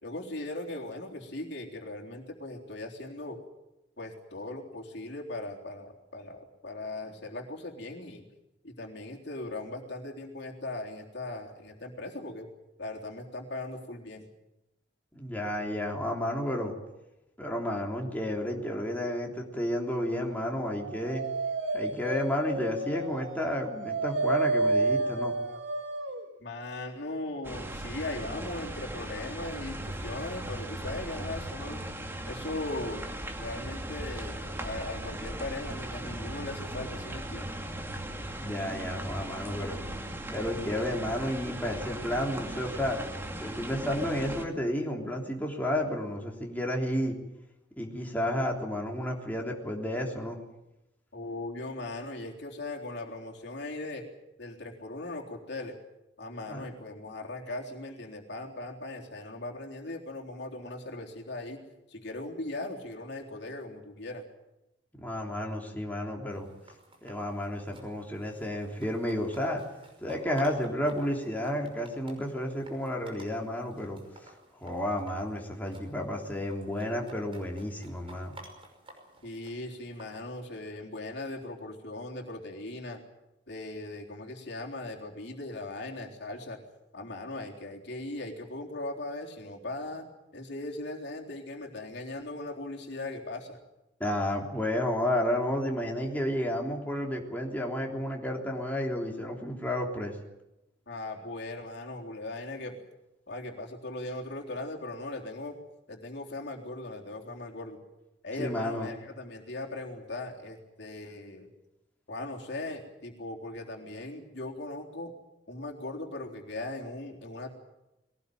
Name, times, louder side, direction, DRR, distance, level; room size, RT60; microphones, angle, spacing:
voice 1, 0.0-3.4 4.0-8.2 8.6-12.5 12.8-14.2 26.4-31.8 32.3-33.1 33.4-37.6 51.1-54.0 54.4-55.8 56.2-61.6 61.9-64.3 79.2-83.0 83.5-86.6 86.9-90.1 90.3-93.6 100.9-102.8 103.3-105.6 105.9-107.8 108.2-111.5 112.1-115.1 115.5-117.5, left 2 dB, 65° left, 0 dB, 3.7 m, -39 dB
voice 2, 15.1-16.7 17.4-21.2 21.7-25.3 38.4-39.8 40.3-43.0 43.4-47.2 47.8-50.4 56.5-56.6 65.0-66.5 67.0-69.6 70.0-74.3 74.6-78.3 94.0-100.1 108.4-108.9, left 1 dB, 10° left, -1 dB, 3.3 m, -31 dB
Dog, 20.6-26.2, right 2 dB, 85° right, 2.5 m, -30 dB
sound 1, 27.4-44.4, right 1 dB, 15° right, 2.2 m, -38 dB
sound 2, 66.3-80.2, right 1 dB, 30° right, 5.7 m, -55 dB
22.0 x 19.0 x 9.3 m, 0.94 s
head